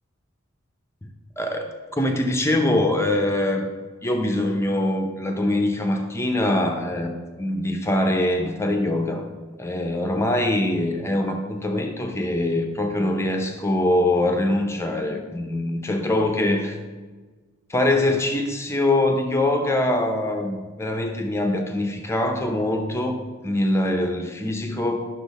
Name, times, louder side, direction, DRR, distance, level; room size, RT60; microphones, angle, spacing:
voice 1, 1.4-3.7 4.0-9.2 9.6-16.8 17.7-25.1, left 1 dB, 15° left, 4 dB, 0.6 m, -23 dB
10.0 x 6.2 x 4.1 m, 1.4 s
head